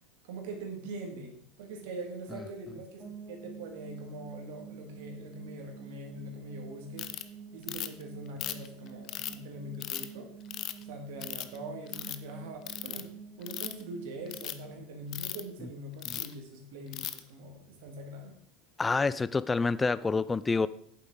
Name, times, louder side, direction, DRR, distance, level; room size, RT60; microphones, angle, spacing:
voice 1, 0.2-7.1 7.5-10.3 10.8-13.1 13.4-18.4, right 2 dB, 65° right, 3 dB, 2.0 m, -43 dB
sound 1, 3.0-15.9, right 5 dB, 10° right, 2.9 m, -49 dB
Ratchet pawl, 7.0-7.2 7.7-8.0 8.4-9.3 9.8-10.1 10.5-10.8 11.2-11.6 11.9-12.2 12.7-13.0 13.4-13.8 14.3-14.5 15.1-15.4 16.0-16.3 16.9-17.2, left 13 dB, 45° left, 0.6 m, -36 dB
voice 2, 18.8-20.7, left 4 dB, 15° left, 17 dB, 0.3 m, -27 dB
8.7 x 7.5 x 3.8 m, 0.64 s
figure-of-eight pair, 80°, 0 cm